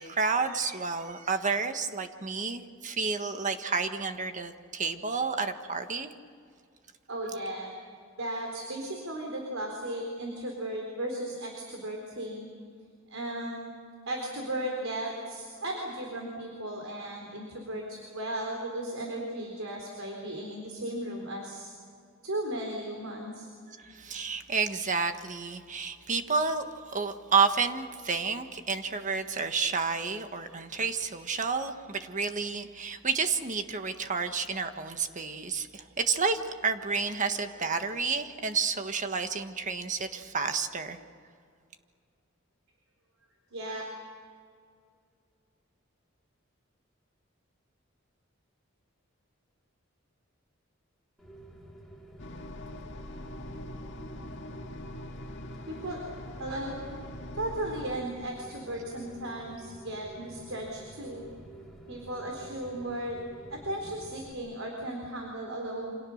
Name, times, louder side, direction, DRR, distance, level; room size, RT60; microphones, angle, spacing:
voice 1, 0.0-6.1 23.8-41.0, right 5 dB, 40° right, 7 dB, 1.5 m, -30 dB
voice 2, 7.1-7.7 8.2-12.5 13.1-13.7 14.1-21.7 22.2-23.5 43.5-43.8 55.7-56.0 56.4-56.8 57.3-61.2 61.9-63.2 63.5-66.0, right 1 dB, 85° right, 1 dB, 4.0 m, -36 dB
Rain, 51.2-64.3, right 1 dB, ahead, 3.4 m, -50 dB
sound 1, 52.2-58.0, left 1 dB, 60° left, 2.0 m, -42 dB
28.5 x 26.5 x 6.5 m, 2.3 s
head